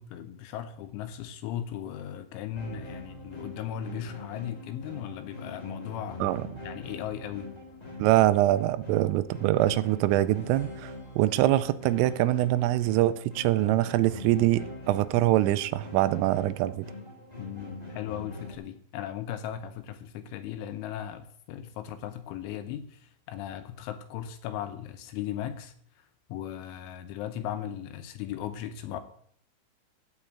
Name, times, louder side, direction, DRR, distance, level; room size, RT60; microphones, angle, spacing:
voice 1, 0.0-6.2 6.6-7.5 17.4-29.0, left 10 dB, 80° left, 3.0 m, -37 dB
sound 1, 2.5-18.5, left 2 dB, 25° left, 0.8 m, -43 dB
voice 2, 8.0-16.9, right 15 dB, 85° right, 3.1 m, -24 dB
14.5 x 4.8 x 8.6 m
omnidirectional pair, 5.9 m